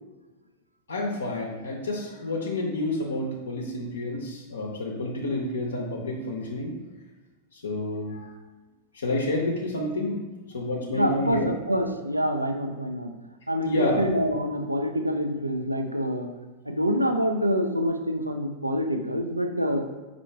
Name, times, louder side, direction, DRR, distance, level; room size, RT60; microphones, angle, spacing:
voice 1, 0.9-6.7 7.5-8.3 8.9-10.2 10.5-11.5 13.6-14.1, left 2 dB, 70° left, -1 dB, 0.6 m, -29 dB
voice 2, 10.9-13.1 13.5-16.3 16.7-19.8, equal, 85° right, 5 dB, 0.4 m, -26 dB
4.6 x 2.5 x 4.5 m, 1.2 s
figure-of-eight pair, 90°, 0 cm